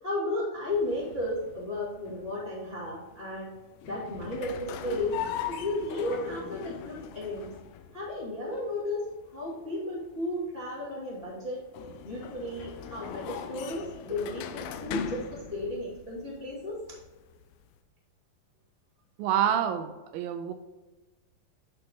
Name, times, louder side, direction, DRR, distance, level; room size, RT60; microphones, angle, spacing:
voice 1, 0.0-3.5 3.8-5.2 5.5-7.5 7.9-11.6 12.0-16.8, left 1 dB, 15° left, -4 dB, 1.2 m, -34 dB
sound 1, 0.7-17.8, left 9 dB, 80° left, 1.9 m, -41 dB
voice 2, 19.2-20.5, right 9 dB, 80° right, 8 dB, 2.3 m, -27 dB
10.5 x 4.0 x 3.7 m, 1.2 s
omnidirectional pair, 4.3 m